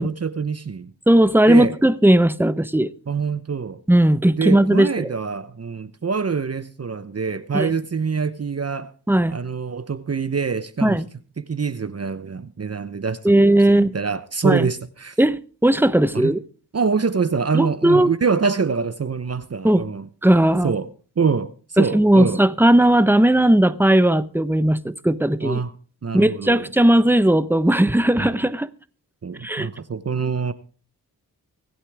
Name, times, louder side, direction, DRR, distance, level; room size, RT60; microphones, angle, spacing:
voice 1, 0.0-0.9 1.5-1.7 3.1-3.8 4.4-8.9 9.3-11.0 11.4-15.2 16.1-16.3 16.7-20.1 20.6-20.9 21.2-22.4 25.4-25.7 26.0-26.6 28.2-28.3 29.2-30.5, right 5 dB, 40° right, 0.9 m, -25 dB
voice 2, 1.1-2.9 3.9-5.1 7.5-7.7 9.1-9.4 10.8-11.0 13.2-13.9 14.4-14.7 15.2-16.4 17.5-18.1 19.6-19.8 20.2-20.7 21.8-25.6 26.1-28.7 29.4-29.7, right 1 dB, 5° right, 1.0 m, -17 dB
24.5 x 8.3 x 3.5 m
cardioid pair, 55°, 39 cm